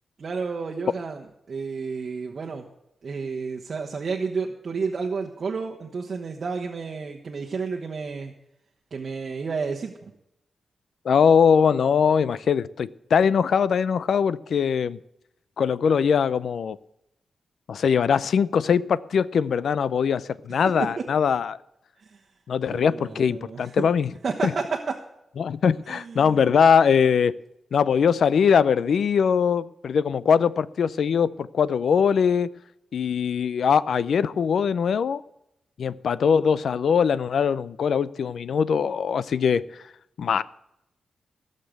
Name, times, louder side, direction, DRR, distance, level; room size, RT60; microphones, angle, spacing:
voice 1, 0.2-2.7 3.0-8.3 8.9-10.1 21.0-21.1 22.0-22.2 22.7-23.9 24.2-25.0 25.9-26.4, right 5 dB, 55° right, 1.1 m, -31 dB
voice 2, 11.1-15.0 15.6-16.8 17.7-21.6 22.5-24.1 24.4-24.5 25.4-27.4 27.7-32.5 32.9-35.2 35.8-39.6 40.2-40.4, left 7 dB, 80° left, 0.5 m, -21 dB
16.5 x 6.6 x 8.1 m
wide cardioid pair, 120°, 0 cm